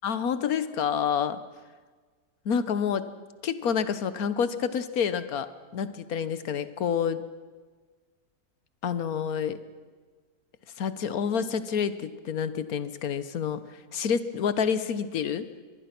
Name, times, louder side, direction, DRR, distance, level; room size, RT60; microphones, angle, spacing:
voice 1, 0.0-1.4 2.4-3.1 3.4-7.2 8.8-9.6 10.8-13.6 13.9-15.5, left 7 dB, 70° left, 13 dB, 1.5 m, -28 dB
24.5 x 20.5 x 6.0 m, 1.4 s
omnidirectional pair, 1.6 m